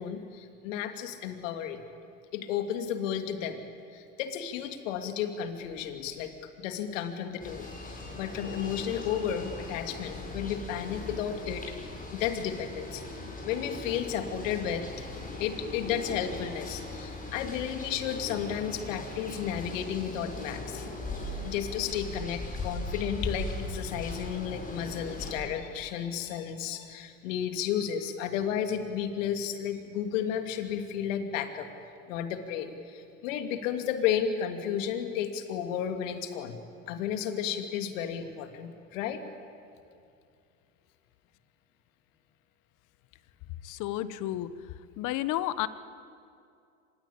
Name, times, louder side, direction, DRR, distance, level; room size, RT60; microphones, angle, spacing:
voice 1, 0.0-1.8 2.3-3.7 3.9-13.0 13.4-15.1 15.4-20.9 21.1-31.7 32.1-36.6 36.9-39.2, left 9 dB, 70° left, 7 dB, 2.7 m, -33 dB
sound 1, 7.4-25.4, left 2 dB, 20° left, 7.5 m, -39 dB
voice 2, 43.6-44.5 45.0-45.7, left 14 dB, 50° left, 15 dB, 1.2 m, -31 dB
25.5 x 20.5 x 8.7 m, 2.4 s
hypercardioid pair, 95°, 39 cm